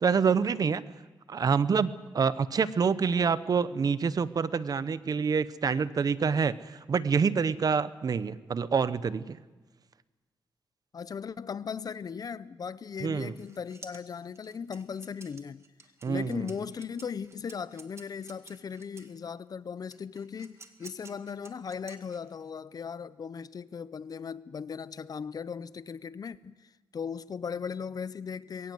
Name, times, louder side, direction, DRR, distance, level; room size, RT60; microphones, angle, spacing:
voice 1, 0.0-0.8 1.3-9.4 13.0-13.3 16.0-16.4, right 6 dB, 50° right, 0.8 m, -27 dB
voice 2, 10.9-15.6 16.1-28.7, left 6 dB, 50° left, 0.6 m, -38 dB
sound 1, 12.9-19.2 19.9-22.5, right 3 dB, 35° right, 1.9 m, -52 dB
21.5 x 17.0 x 7.8 m
cardioid pair, 95°, 8 cm